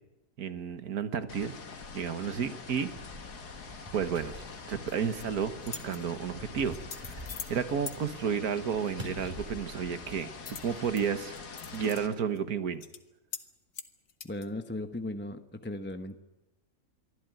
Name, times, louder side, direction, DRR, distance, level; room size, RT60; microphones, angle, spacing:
voice 1, 0.4-1.6 1.9-2.9 3.9-4.3 4.7-10.3 10.6-11.4 11.7-12.8, right 7 dB, 70° right, 11 dB, 1.8 m, -32 dB
sound 1, 1.3-12.1, left 5 dB, 90° left, 2.4 m, -45 dB
sound 2, 2.9-10.8, equal, 30° right, 5.2 m, -48 dB
sound 3, 4.9-5.2 5.6-6.0 6.7-7.6 7.9-8.0 10.5-11.0 11.4-12.0 12.4-12.5 12.8-13.0 13.3-13.5 13.7-14.5, left 6 dB, 60° left, 1.7 m, -42 dB
voice 2, 14.2-16.2, left 1 dB, 10° left, 7 dB, 0.7 m, -37 dB
24.0 x 14.5 x 9.4 m, 1.1 s
omnidirectional pair, 1.7 m